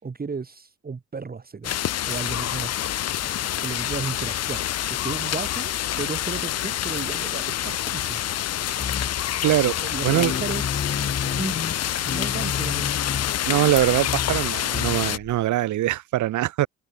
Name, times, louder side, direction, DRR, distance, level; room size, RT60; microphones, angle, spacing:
voice 1, 0.0-3.3 3.6-8.2 9.8-10.9 11.2-12.9, right 5 dB, 30° right, 3.0 m, -35 dB
sound 1, 1.6-15.2, left 12 dB, 55° left, 0.8 m, -27 dB
sound 2, 8.8-9.4 9.7-9.8 10.1-15.4, left 6 dB, 40° left, 3.4 m, -31 dB
voice 2, 9.4-9.7 10.0-10.3 13.5-16.7, right 15 dB, 75° right, 1.0 m, -22 dB
open air
cardioid pair, 90°, 30 cm